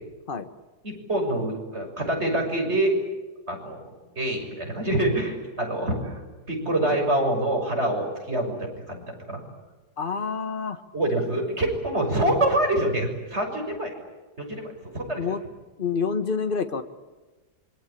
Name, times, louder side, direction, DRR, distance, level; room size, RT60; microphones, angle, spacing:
voice 1, 0.8-2.9 3.5-6.2 6.5-9.4 10.9-13.9 14.4-15.2, right 1 dB, 40° right, 2 dB, 6.7 m, -26 dB
voice 2, 10.0-10.8 15.2-15.4 15.8-16.8, left 5 dB, 30° left, 9 dB, 1.7 m, -28 dB
27.0 x 24.5 x 8.6 m, 1.2 s
omnidirectional pair, 1.8 m